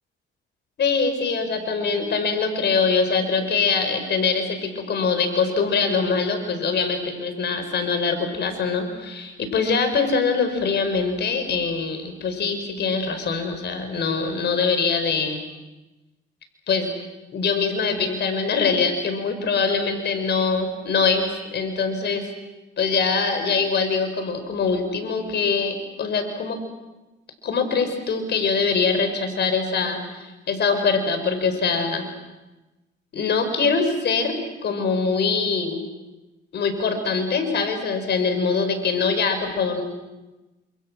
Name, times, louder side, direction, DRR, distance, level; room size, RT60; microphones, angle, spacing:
voice 1, 0.8-15.4 16.7-16.9 17.3-22.3 22.8-26.6 27.4-32.1 33.1-35.8 36.5-39.8, left 5 dB, 60° left, 7 dB, 5.2 m, -23 dB
28.5 x 27.5 x 6.3 m, 1.1 s
cardioid pair, 90°, 20 cm